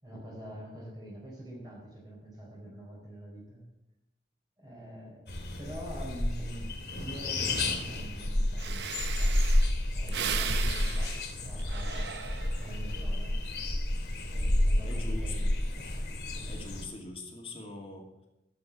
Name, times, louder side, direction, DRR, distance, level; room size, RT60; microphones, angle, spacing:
voice 1, 0.0-3.7 4.6-9.4 9.9-12.2 12.6-13.4 14.3-15.6 16.3-16.7, right 1 dB, 25° right, -3 dB, 4.3 m, -45 dB
sound 1, 5.3-16.8, left 1 dB, 70° left, 2.5 m, -30 dB
Breathing, 8.2-8.3 8.6-12.8 13.3-13.7, right 8 dB, 75° right, 0.7 m, -37 dB
voice 2, 14.8-15.5 16.5-18.3, left 3 dB, 30° left, 0 dB, 2.3 m, -43 dB
12.0 x 8.0 x 7.4 m, 0.93 s
head